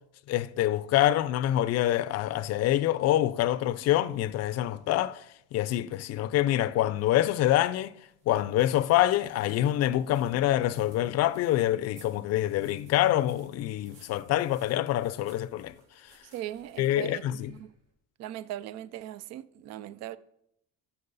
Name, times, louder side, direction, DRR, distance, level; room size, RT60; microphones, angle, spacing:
voice 1, 0.3-5.2 5.5-7.9 8.3-15.7 16.8-17.5, left 13 dB, 55° left, 0.5 m, -26 dB
sound 1, 8.0-17.9, right 4 dB, 90° right, 3.5 m, -61 dB
voice 2, 16.2-17.7 18.2-20.2, right 13 dB, 55° right, 0.5 m, -39 dB
13.5 x 5.9 x 4.0 m
cardioid pair, 130°, 31 cm